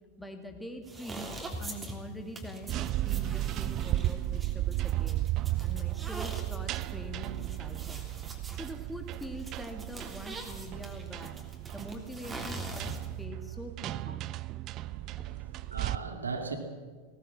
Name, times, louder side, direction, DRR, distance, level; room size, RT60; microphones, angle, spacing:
voice 1, 0.2-1.3 1.6-5.3 5.6-8.0 8.5-11.4 11.7-14.2 15.2-15.3, equal, 5° left, 4 dB, 2.6 m, -44 dB
sound 1, 0.8-13.2, right 2 dB, 15° right, 3.2 m, -44 dB
sound 2, 2.6-15.9, right 15 dB, 35° right, 0.6 m, -34 dB
voice 2, 14.8-16.6, right 4 dB, 75° right, 5 dB, 2.4 m, -39 dB
19.5 x 18.5 x 7.4 m, 1.5 s
figure-of-eight pair, 90°, 0 cm